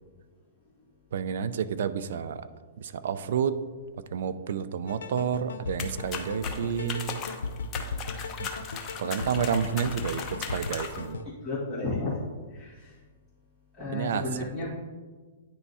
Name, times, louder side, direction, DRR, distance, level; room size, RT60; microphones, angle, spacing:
voice 1, 1.1-2.5 2.8-3.6 4.1-7.2 8.4-8.5 9.0-11.2 13.9-14.2, right 7 dB, 70° right, 13 dB, 0.5 m, -30 dB
sound 1, 4.9-11.2, left 4 dB, 90° left, 0.6 m, -37 dB
sound 2, 5.8-11.1, left 6 dB, 25° left, 0.8 m, -38 dB
voice 2, 11.4-12.1 12.5-12.9 13.8-14.7, left 2 dB, 10° right, -11 dB, 2.1 m, -32 dB
9.7 x 3.6 x 4.2 m, 1.4 s
hypercardioid pair, 145°, 0 cm